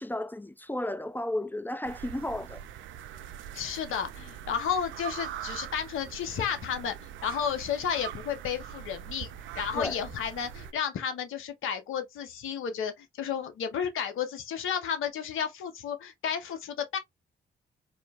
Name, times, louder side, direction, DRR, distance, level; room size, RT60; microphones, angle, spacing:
voice 1, 0.0-2.6 9.7-10.0, left 1 dB, 10° left, 0.4 m, -33 dB
sound 1, 1.9-10.7, right 10 dB, 65° right, 0.5 m, -42 dB
voice 2, 3.5-6.9 7.2-9.3 9.6-17.0, left 7 dB, 70° left, 1.0 m, -32 dB
4.2 x 2.7 x 2.4 m
hypercardioid pair, 40°, 21 cm